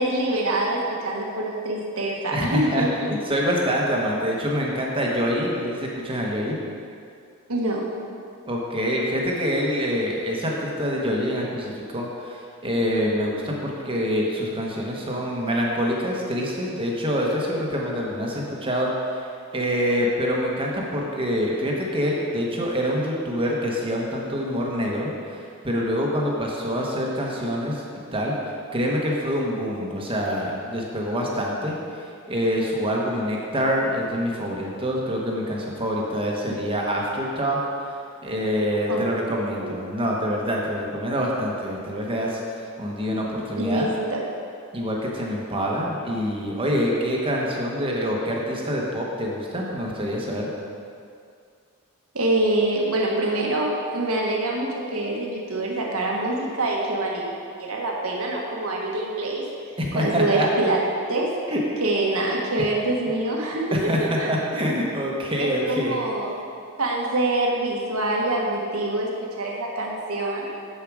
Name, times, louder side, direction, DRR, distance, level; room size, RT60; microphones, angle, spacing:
voice 1, 0.0-3.1 7.5-7.8 38.9-39.7 43.6-44.2 52.1-57.2 57.6-59.4 59.9-61.4 61.8-64.3 65.4-66.3 66.8-70.5, right 2 dB, 75° right, -1 dB, 1.4 m, -25 dB
voice 2, 2.3-6.6 8.5-19.2 19.5-25.4 25.6-27.8 28.1-28.3 28.7-31.7 32.3-37.6 38.2-43.9 44.7-50.5 59.8-60.5 61.5-61.6 63.7-64.0 64.3-66.0, equal, 25° right, -2 dB, 1.1 m, -26 dB
7.6 x 7.0 x 4.8 m, 2.4 s
head